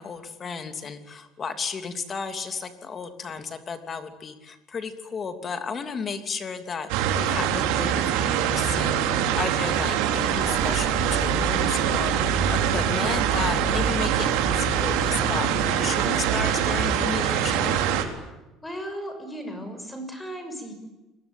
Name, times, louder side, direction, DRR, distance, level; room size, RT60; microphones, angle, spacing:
voice 1, 0.0-17.8, left 5 dB, 30° left, 8 dB, 3.0 m, -33 dB
sound 1, 6.9-18.0, right 9 dB, 90° right, 4.1 m, -24 dB
sound 2, 10.3-16.2, equal, 10° right, 4.3 m, -35 dB
voice 2, 18.6-20.7, equal, 10° left, 7 dB, 6.6 m, -36 dB
28.5 x 22.0 x 9.2 m, 1.0 s
cardioid pair, 150°, 0 cm